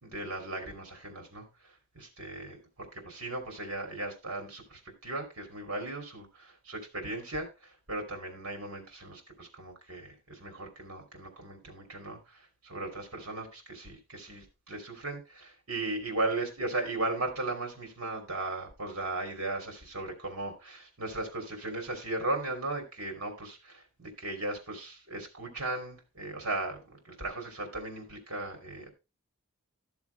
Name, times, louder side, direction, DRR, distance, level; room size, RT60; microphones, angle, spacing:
voice 1, 0.0-28.9, right 2 dB, 70° right, 3 dB, 3.1 m, -37 dB
13.0 x 7.1 x 3.4 m, 0.27 s
head